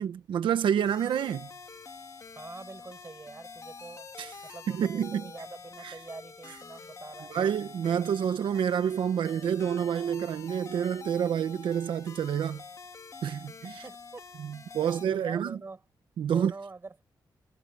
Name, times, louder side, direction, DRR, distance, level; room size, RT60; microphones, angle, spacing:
voice 1, 0.0-1.5 4.2-4.4 4.7-5.2 5.8-6.0 7.3-12.6 13.2-13.8 14.4-15.6 16.2-16.5, right 8 dB, 90° right, 1.3 m, -28 dB
sound 1, 0.8-15.1, left 5 dB, 40° left, 2.3 m, -47 dB
voice 2, 2.4-4.1 4.5-7.3 13.7-14.2 14.8-15.8 16.3-17.0, right 3 dB, 30° right, 7.0 m, -44 dB
wide cardioid pair, 110°, 8 cm